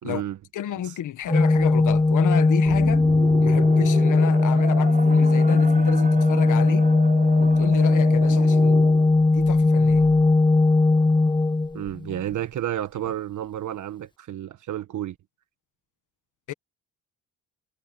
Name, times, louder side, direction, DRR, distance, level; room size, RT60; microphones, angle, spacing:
voice 1, 0.0-0.4 11.7-15.2, right 11 dB, 60° right, 1.4 m, -31 dB
voice 2, 0.5-3.0 3.4-6.9 7.4-8.8 9.3-10.0 16.5-16.6, left 11 dB, 65° left, 1.4 m, -31 dB
Organ, 1.3-12.2, left 3 dB, 15° left, 1.2 m, -19 dB
sound 1, 2.7-9.1, right 4 dB, 25° right, 5.1 m, -34 dB
cardioid pair, 130°, 33 cm